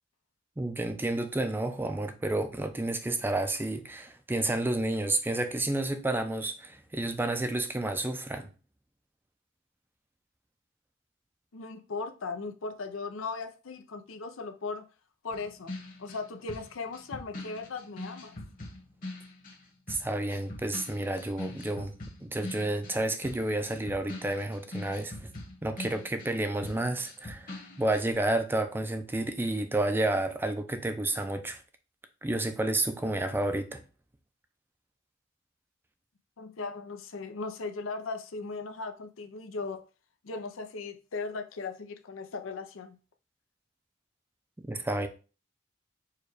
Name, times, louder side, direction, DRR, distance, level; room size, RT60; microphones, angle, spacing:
voice 1, 0.6-8.5 19.9-21.9 22.2-25.3 25.6-31.6 32.2-33.8 44.7-45.1, right 2 dB, 10° right, 0.4 m, -30 dB
voice 2, 11.5-14.8 15.2-18.4 36.4-39.8 40.2-43.0, left 4 dB, 85° left, 0.6 m, -38 dB
sound 1, 15.3-19.6 19.9-26.4 26.6-28.1, left 2 dB, 45° left, 1.3 m, -42 dB
4.7 x 2.3 x 4.8 m
head